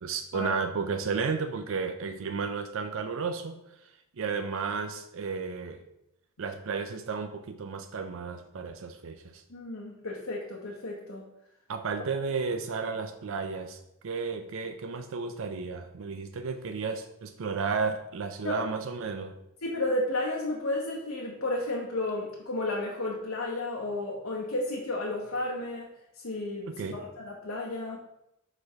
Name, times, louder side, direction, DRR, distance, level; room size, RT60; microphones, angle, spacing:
voice 1, 0.0-3.6 4.2-5.8 6.4-9.4 11.7-19.4 26.7-27.0, right 5 dB, 65° right, 8 dB, 0.5 m, -33 dB
voice 2, 9.5-11.2 18.4-18.6 19.6-25.9 26.2-28.0, left 2 dB, 70° left, -2 dB, 1.1 m, -32 dB
5.2 x 4.2 x 5.6 m, 0.85 s
head